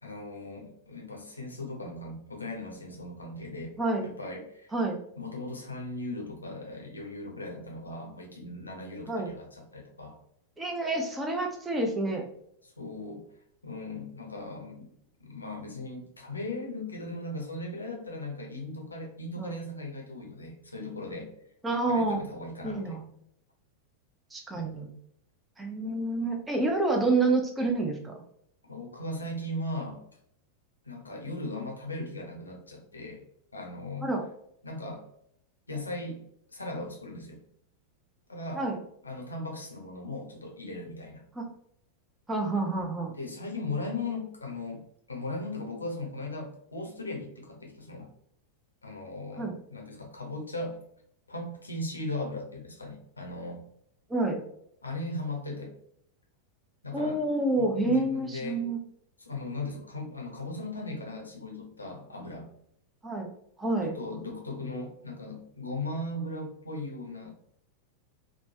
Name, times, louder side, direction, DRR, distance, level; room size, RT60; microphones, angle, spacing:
voice 1, 0.0-3.7 4.0-4.7 5.2-10.2 12.8-13.3 13.6-14.9 15.2-21.3 21.9-22.9 24.5-24.8 28.6-30.0 30.8-33.2 33.5-34.1 34.6-35.1 35.7-36.2 36.5-37.4 38.3-38.7 39.0-41.2 43.2-44.8 45.1-48.1 48.8-50.8 51.3-53.6 54.8-55.7 56.8-57.2 57.6-58.6 59.2-62.5 63.8-67.3, left 2 dB, 80° left, 1 dB, 0.7 m, -38 dB
voice 2, 3.8-4.1 4.7-5.0 9.1-9.3 10.6-12.2 19.4-19.5 21.6-22.2 22.6-23.0 24.3-24.9 25.6-28.1 34.0-34.2 38.5-38.8 41.4-41.5 42.3-43.1 49.4-49.5 54.1-54.4 56.9-58.8 63.0-63.3 63.6-63.9, right 2 dB, 10° right, 2 dB, 0.6 m, -28 dB
3.1 x 2.2 x 2.6 m, 0.71 s
figure-of-eight pair, 90°, 0 cm